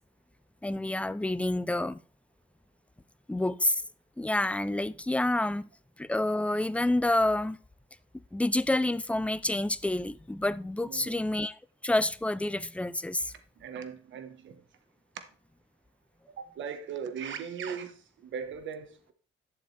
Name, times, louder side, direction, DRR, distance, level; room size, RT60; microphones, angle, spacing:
voice 1, 0.6-2.0 3.3-3.8 4.2-5.7 6.0-7.6 8.3-11.6 11.8-13.3, left 1 dB, 5° left, 0.5 m, -28 dB
voice 2, 13.6-14.6 16.4-19.1, right 7 dB, 70° right, 1.3 m, -39 dB
11.5 x 6.9 x 3.4 m
cardioid pair, 90°, 20 cm